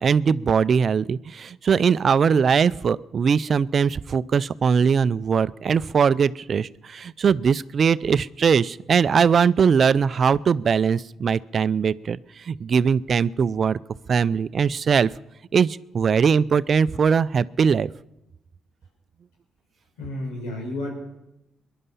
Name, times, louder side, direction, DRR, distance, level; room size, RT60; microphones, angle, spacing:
voice 1, 0.0-13.8 14.1-15.1 15.5-17.9, right 6 dB, 55° right, 18 dB, 0.5 m, -21 dB
voice 2, 20.0-20.9, left 1 dB, 85° left, 1 dB, 5.1 m, -31 dB
21.5 x 11.0 x 5.6 m, 0.89 s
supercardioid pair, 55°, 0 cm